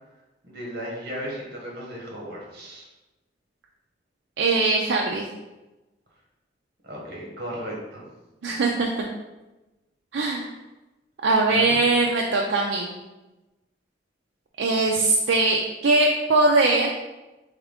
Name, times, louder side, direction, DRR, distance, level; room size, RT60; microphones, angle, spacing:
voice 1, 0.4-2.8 6.8-8.0 11.5-11.8, equal, 60° right, -3 dB, 1.3 m, -35 dB
voice 2, 4.4-5.2 8.4-9.1 10.1-10.5 11.2-12.9 14.6-16.9, right 3 dB, 80° right, -1 dB, 0.4 m, -21 dB
3.6 x 3.5 x 3.6 m, 1.1 s
head